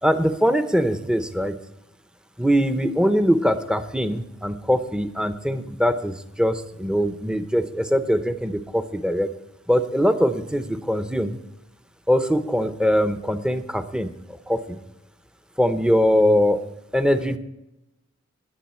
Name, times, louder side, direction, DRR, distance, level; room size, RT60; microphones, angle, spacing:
voice 1, 0.0-1.5 2.4-9.3 9.7-11.4 12.1-14.1 14.5-14.8 15.6-16.7 16.9-17.4, equal, 5° right, 9 dB, 0.7 m, -22 dB
20.0 x 7.9 x 4.4 m, 0.92 s
head